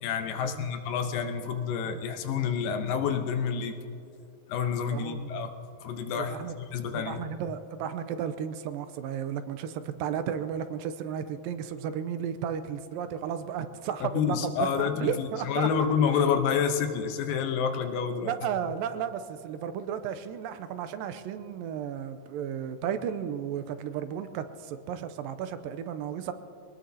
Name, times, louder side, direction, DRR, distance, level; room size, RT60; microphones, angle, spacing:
voice 1, 0.0-3.7 4.5-5.5 5.8-7.2 14.0-18.3, left 7 dB, 80° left, 6 dB, 2.6 m, -28 dB
voice 2, 4.9-5.3 6.2-6.5 6.9-14.5 14.8-15.7 18.2-26.3, right 8 dB, 90° right, 10 dB, 2.4 m, -34 dB
23.0 x 19.0 x 2.8 m, 2.7 s
omnidirectional pair, 4.0 m